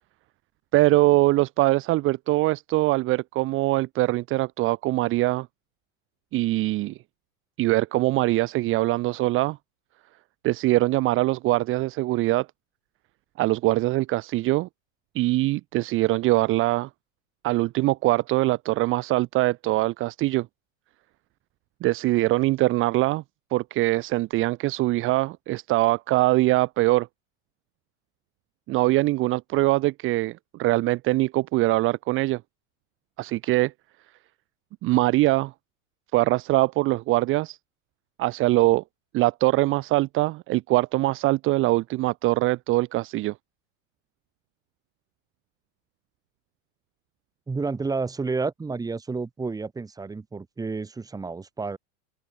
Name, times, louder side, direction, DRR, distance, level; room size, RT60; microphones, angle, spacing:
voice 1, 0.7-5.5 6.3-7.0 7.6-9.6 10.4-12.5 13.4-14.7 15.1-16.9 17.4-20.5 21.8-23.2 23.5-27.1 28.7-32.4 33.2-33.7 34.8-35.5 36.1-37.6 38.2-38.8 39.1-43.3, right 18 dB, 30° right, 1.3 m, -22 dB
voice 2, 47.5-51.8, right 4 dB, 10° right, 3.1 m, -30 dB
open air
supercardioid pair, 160°, 43 cm